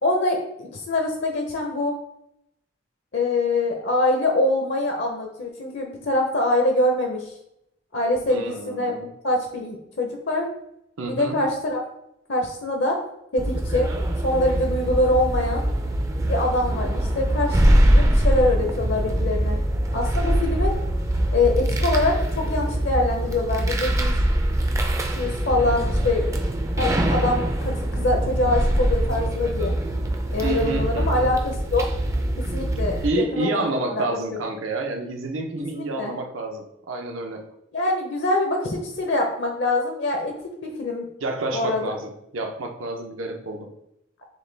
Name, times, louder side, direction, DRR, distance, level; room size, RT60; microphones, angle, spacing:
voice 1, 0.0-1.9 3.1-7.3 7.9-10.5 11.1-11.8 12.3-13.0 13.3-13.9 14.2-15.6 16.2-19.6 19.9-20.7 21.3-24.2 25.2-26.4 26.8-29.7 30.3-31.8 32.5-33.7 33.9-34.4 35.7-36.1 37.7-40.3 40.6-41.1 41.5-41.9, left 2 dB, 65° left, 1 dB, 0.6 m, -24 dB
voice 2, 8.3-9.0 11.0-11.4 30.4-31.3 33.0-37.4 41.2-43.7, right 2 dB, 90° right, 3 dB, 0.7 m, -29 dB
sound 1, 13.4-33.1, right 1 dB, 15° right, 0.3 m, -23 dB
6.3 x 2.2 x 3.3 m, 0.78 s
head